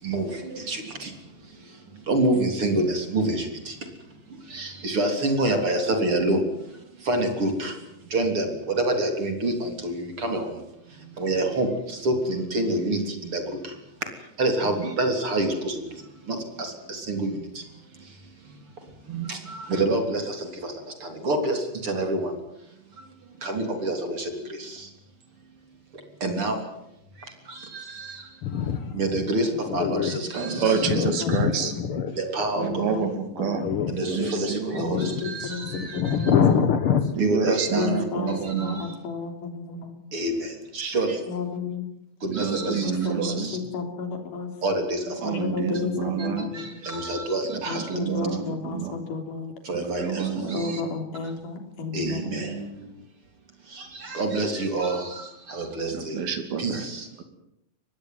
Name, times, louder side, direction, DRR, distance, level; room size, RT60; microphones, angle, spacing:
voice 1, 0.0-1.1 2.1-3.8 4.5-6.4 7.1-7.7 8.1-10.5 11.2-13.7 14.4-15.8 16.3-17.4 19.1-22.3 23.4-24.9 26.2-26.6 27.5-28.2 28.9-30.9 32.2-32.9 33.9-36.3 37.2-37.9 38.3-38.9 40.1-41.2 42.2-43.6 44.6-45.3 46.5-48.2 49.7-50.8 51.9-52.5 53.7-56.2 56.6-57.1, right 2 dB, 35° right, 5 dB, 4.0 m, -27 dB
voice 2, 28.4-29.2 29.7-32.1 33.6-34.3 34.7-37.1, left 7 dB, 75° left, 9 dB, 1.2 m, -25 dB
voice 3, 29.7-31.3 32.6-33.1 33.4-33.7 34.7-36.7 37.7-40.0 41.3-41.9 42.8-44.5 45.2-46.8 47.6-49.5 50.5-52.5, left 4 dB, 60° left, 5 dB, 4.9 m, -33 dB
voice 4, 30.3-31.7 32.6-33.7 34.1-34.9 37.2-38.8 40.8-40.9 42.3-43.5 45.2-46.5 47.5-49.0 49.8-50.8 52.1-52.9 55.9-56.9, right 7 dB, 70° right, 8 dB, 4.5 m, -28 dB
23.5 x 19.5 x 9.4 m, 0.85 s
omnidirectional pair, 4.4 m